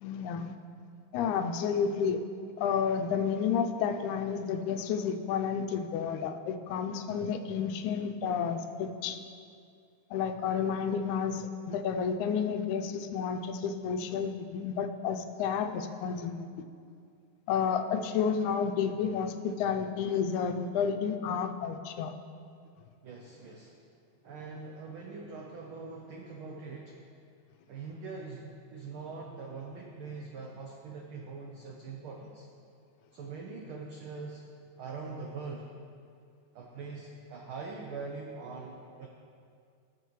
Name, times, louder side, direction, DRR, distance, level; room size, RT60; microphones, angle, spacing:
voice 1, 0.0-0.5 1.1-2.2 2.6-9.2 10.1-16.5 17.5-22.1, left 7 dB, 85° left, 7 dB, 2.0 m, -31 dB
voice 2, 23.0-23.8 24.2-27.0 27.7-32.5 33.1-34.4 34.8-35.7 36.5-39.1, right 4 dB, 85° right, 0 dB, 1.1 m, -42 dB
17.5 x 6.5 x 3.1 m, 2.3 s
omnidirectional pair, 3.4 m